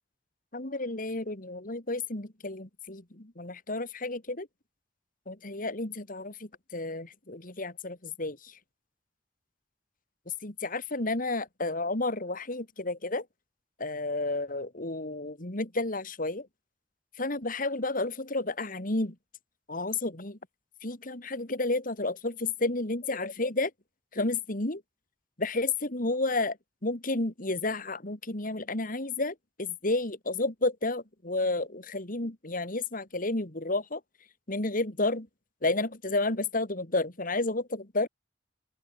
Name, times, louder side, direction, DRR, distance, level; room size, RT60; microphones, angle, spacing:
voice 1, 0.5-4.5 5.3-8.5 10.4-13.2 13.8-16.5 17.2-19.1 19.7-20.4 20.8-23.7 24.1-24.8 25.4-26.6 26.8-34.0 34.5-35.3 35.6-38.1, left 2 dB, 50° left, 3.0 m, -31 dB
open air
head